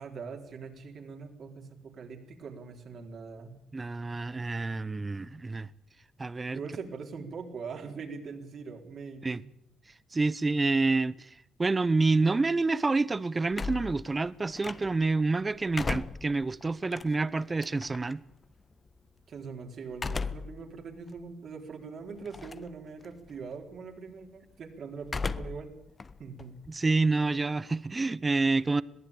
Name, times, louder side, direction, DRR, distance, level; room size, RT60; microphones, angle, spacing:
voice 1, 0.0-3.6 6.5-9.4 19.3-25.7 26.2-26.6, right 5 dB, 60° right, 4.1 m, -42 dB
voice 2, 3.7-5.7 6.2-6.6 9.2-9.4 10.1-11.3 11.6-18.2 26.7-28.8, right 3 dB, 25° right, 0.8 m, -28 dB
sound 1, 13.5-15.1 15.5-18.1 19.9-20.6 21.1-21.2 22.3-22.7 23.0-23.5 25.0-25.7 26.0-27.4, left 4 dB, 30° left, 0.8 m, -36 dB
22.0 x 15.0 x 8.9 m
cardioid pair, 90°, 0 cm